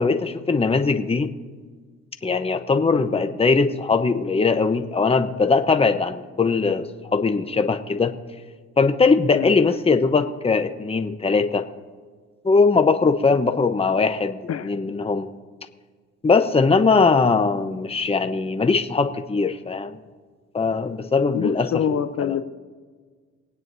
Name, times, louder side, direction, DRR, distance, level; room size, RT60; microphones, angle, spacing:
voice 1, 0.0-1.3 2.2-6.9 7.1-8.1 8.8-11.6 12.4-15.3 16.2-20.0 20.5-21.8 22.2-22.4, left 4 dB, 20° left, 7 dB, 0.9 m, -20 dB
voice 2, 21.3-22.4, left 8 dB, 55° left, 10 dB, 0.8 m, -26 dB
26.5 x 9.3 x 2.7 m, 1.5 s
cardioid pair, 90°, 30 cm